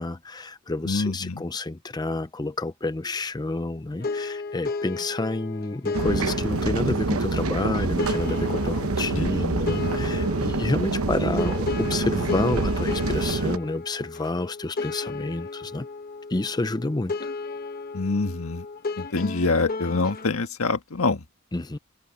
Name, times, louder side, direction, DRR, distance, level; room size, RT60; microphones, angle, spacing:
voice 1, 0.0-15.9 16.3-17.3 21.5-21.8, left 2 dB, 20° left, 0.6 m, -29 dB
voice 2, 0.8-1.4 9.1-9.3 17.9-18.6 19.0-21.2, left 3 dB, 85° left, 1.5 m, -25 dB
sound 1, 4.0-20.5, left 3 dB, 45° left, 1.1 m, -34 dB
sound 2, 5.9-13.6, right 3 dB, 90° right, 0.9 m, -26 dB
head